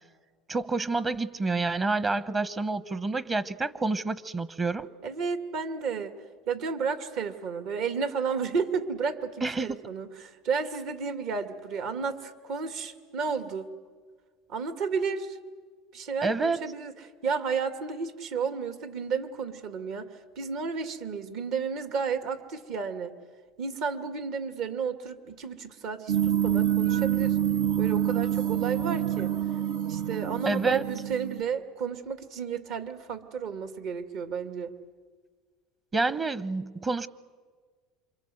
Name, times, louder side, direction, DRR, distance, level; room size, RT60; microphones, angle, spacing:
voice 1, 0.5-4.9 9.4-9.8 16.2-16.6 30.5-30.8 35.9-37.1, right 3 dB, 25° right, 15 dB, 1.0 m, -28 dB
voice 2, 5.0-6.2 6.5-13.7 14.5-15.4 15.9-16.9 17.2-23.1 23.6-27.4 27.8-29.3 29.9-34.7, right 5 dB, 65° right, 8 dB, 2.4 m, -32 dB
sound 1, 26.1-31.4, right 10 dB, 80° right, 1.2 m, -27 dB
27.5 x 25.0 x 7.9 m, 1.5 s
supercardioid pair, 105°, 0 cm